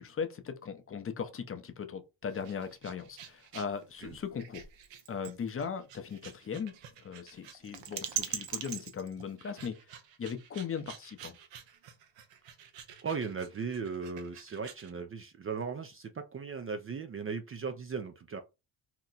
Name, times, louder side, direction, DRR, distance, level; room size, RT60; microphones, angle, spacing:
voice 1, 0.0-4.6 5.1-6.7 7.0-9.8 10.2-11.4, left 6 dB, 30° left, 0.6 m, -38 dB
sound 1, 2.2-14.9, right 9 dB, 80° right, 0.7 m, -44 dB
voice 2, 13.0-18.4, right 5 dB, 30° right, 0.4 m, -37 dB
2.9 x 2.1 x 3.9 m
cardioid pair, 85°, 45 cm